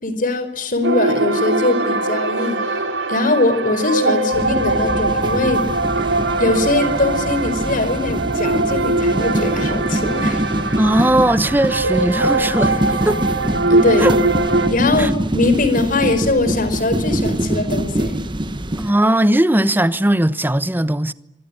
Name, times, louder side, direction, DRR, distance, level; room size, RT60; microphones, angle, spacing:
voice 1, 0.0-2.6 3.1-5.7 6.4-10.4 13.7-14.1 14.7-18.2, left 2 dB, 50° left, 5.0 m, -21 dB
sound 1, 0.8-14.7, right 2 dB, 85° right, 4.1 m, -21 dB
sound 2, 4.3-18.9, right 1 dB, 25° right, 1.4 m, -24 dB
voice 2, 10.8-13.2 14.0-14.2 15.0-15.1 18.8-21.1, right 1 dB, 10° right, 1.0 m, -18 dB
26.0 x 23.0 x 10.0 m
head